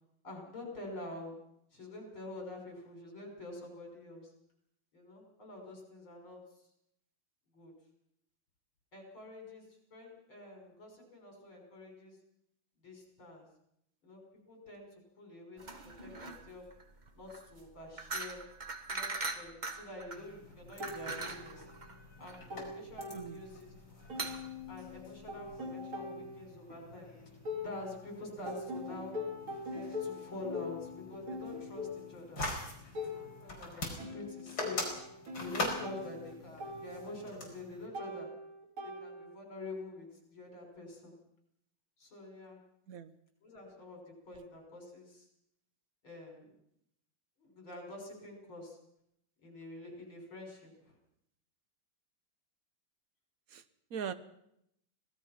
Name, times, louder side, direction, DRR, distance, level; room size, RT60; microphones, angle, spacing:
voice 1, 0.2-1.3 1.7-4.3 4.9-6.4 7.5-7.7 8.9-9.6 9.9-12.2 12.8-13.5 14.0-14.2 14.5-14.9 15.2-15.6 16.0-16.7 17.1-18.4 18.9-21.7 22.2-23.7 24.7-27.1 27.6-29.2 29.7-32.4 33.0-34.9 35.4-38.3 38.8-41.1 42.0-42.6 43.4-45.3 46.0-46.5 47.4-48.8 49.4-51.0, left 2 dB, 75° left, 1 dB, 6.9 m, -47 dB
sound 1, 15.6-25.6, right 3 dB, 25° right, 1.2 m, -42 dB
sound 2, 20.1-37.9, left 2 dB, 45° left, 5.2 m, -45 dB
sound 3, 20.8-21.9 22.2-23.7 24.1-28.1 28.5-39.5, left 3 dB, 70° right, 4.2 m, -43 dB
voice 2, 23.1-23.5 34.1-34.3 42.9-43.2 53.5-53.6 53.9-54.1, right 7 dB, 50° right, 12 dB, 1.3 m, -41 dB
25.5 x 18.0 x 5.9 m, 0.76 s
omnidirectional pair, 2.3 m